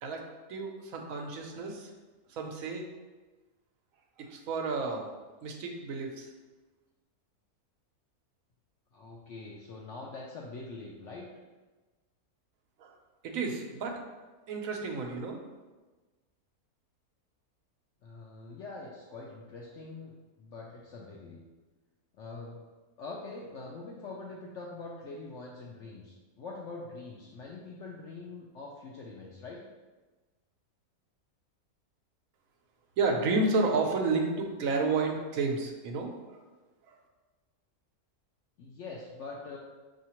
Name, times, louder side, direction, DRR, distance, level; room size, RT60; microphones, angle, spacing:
voice 1, 0.5-1.9 2.3-2.9 4.2-5.1 5.4-6.3 12.8-12.9 13.2-14.0 14.5-15.4 33.0-36.4 36.9-37.0, right 3 dB, 70° right, 2 dB, 1.0 m, -31 dB
voice 2, 8.9-11.3 18.0-21.5 22.1-22.6 23.0-29.6 38.6-39.6, left 3 dB, 65° left, -3 dB, 0.7 m, -44 dB
5.5 x 2.8 x 2.9 m, 1.2 s
omnidirectional pair, 1.6 m